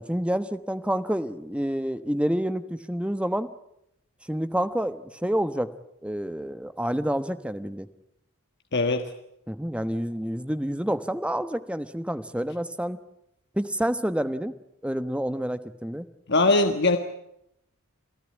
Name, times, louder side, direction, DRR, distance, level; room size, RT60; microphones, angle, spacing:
voice 1, 0.0-3.5 4.3-5.7 6.0-7.9 9.5-13.0 13.5-14.5 14.8-16.1, equal, 5° right, 11 dB, 1.1 m, -28 dB
voice 2, 8.7-9.0 16.3-17.0, left 2 dB, 55° left, 6 dB, 1.5 m, -21 dB
28.0 x 16.0 x 9.8 m, 0.79 s
head